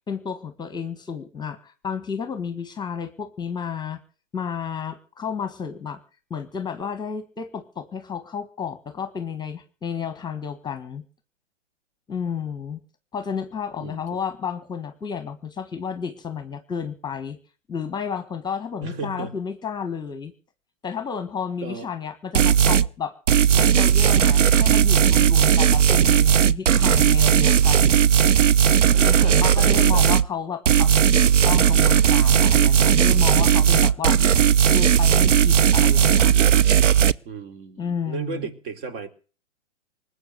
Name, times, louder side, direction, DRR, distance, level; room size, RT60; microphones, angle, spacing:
voice 1, 0.1-4.0 4.3-6.0 6.3-11.0 12.1-12.8 13.1-17.4 17.7-20.3 20.8-23.1 23.6-27.9 29.0-34.2 34.7-36.3 37.8-38.5, left 7 dB, 10° left, 10 dB, 1.5 m, -31 dB
voice 2, 18.8-19.3 21.6-21.9 23.5-23.7 28.9-30.1 33.6-33.9 37.3-39.1, right 4 dB, 45° right, 8 dB, 3.7 m, -34 dB
sound 1, 22.3-22.9 23.3-30.3 30.7-37.1, right 8 dB, 80° right, 1.0 m, -17 dB
20.0 x 8.3 x 7.9 m, 0.40 s
hypercardioid pair, 135°, 37 cm